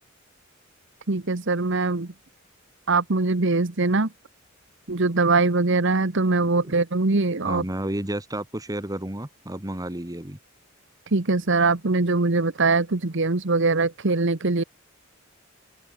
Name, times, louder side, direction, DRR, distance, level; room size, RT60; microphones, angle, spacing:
voice 1, 1.1-2.1 2.9-4.1 4.9-7.6 11.1-14.6, right 3 dB, 60° right, 1.3 m, -22 dB
voice 2, 6.4-6.7 7.4-10.4, right 1 dB, 20° right, 2.2 m, -31 dB
open air
head